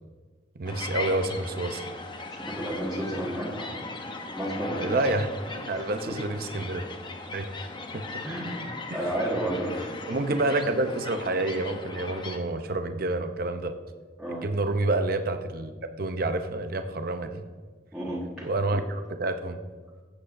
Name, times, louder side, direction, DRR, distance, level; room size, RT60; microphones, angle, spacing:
voice 1, 0.5-1.9 4.8-6.9 7.3-7.5 8.1-8.2 8.9-9.0 10.1-13.7 14.3-15.7 16.0-17.4 18.4-19.6, right 2 dB, 55° right, 7 dB, 0.7 m, -28 dB
sound 1, 0.6-12.4, left 3 dB, 25° left, 0.8 m, -38 dB
voice 2, 2.3-3.8 4.3-4.9 5.7-5.8 8.2-8.6 8.9-10.0 14.2-14.4 17.9-18.5, right 1 dB, 5° right, -9 dB, 1.6 m, -32 dB
15.0 x 7.9 x 2.6 m, 1.4 s
head